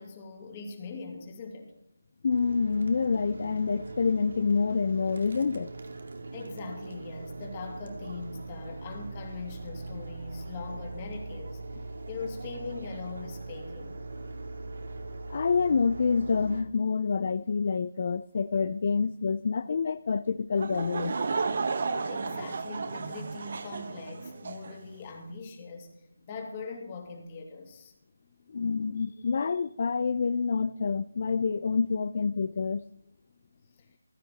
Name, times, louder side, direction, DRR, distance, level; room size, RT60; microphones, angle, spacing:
voice 1, 0.0-1.7 6.3-11.6 12.1-14.0 21.8-25.9 26.3-27.9 28.3-28.7 33.8-33.9, left 4 dB, 25° left, 2.6 m, -41 dB
voice 2, 2.2-5.7 15.3-21.2 28.5-32.8, left 5 dB, 50° left, 0.4 m, -27 dB
sound 1, 2.3-16.6, right 3 dB, 70° right, 2.1 m, -41 dB
Laughter / Crowd, 20.6-24.8, right 4 dB, 50° right, 1.0 m, -33 dB
15.0 x 12.0 x 4.0 m
figure-of-eight pair, 165°, 0 cm